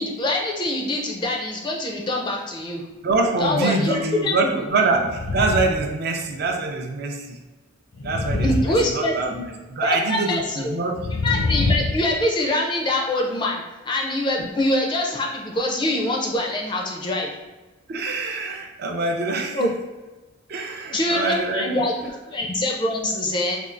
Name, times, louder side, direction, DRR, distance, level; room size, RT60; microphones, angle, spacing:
voice 1, 0.0-2.8 3.4-4.5 8.4-9.3 9.8-10.8 11.2-17.3 19.5-19.7 20.9-22.0 22.3-23.6, left 1 dB, 20° left, -1 dB, 0.4 m, -24 dB
voice 2, 3.0-5.0 5.3-7.4 8.0-11.0 17.9-19.7 20.5-21.6, right 3 dB, 50° right, 2 dB, 0.4 m, -24 dB
sound 1, 5.0-5.9 6.2-6.4 7.9-9.5 10.9-12.2, left 2 dB, 75° left, 0.6 m, -25 dB
4.3 x 2.3 x 2.5 m, 1.2 s
head